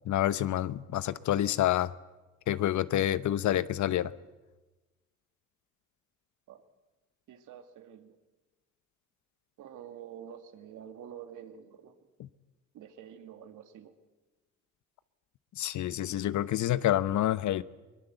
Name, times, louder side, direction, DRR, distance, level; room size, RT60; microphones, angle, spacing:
voice 1, 0.1-1.9 2.5-4.1 15.6-17.6, left 12 dB, 70° left, 0.9 m, -28 dB
voice 2, 7.3-8.2 9.6-12.1 12.7-13.9, right 9 dB, 85° right, 2.2 m, -48 dB
22.5 x 21.0 x 8.0 m
cardioid pair, 90°, 30 cm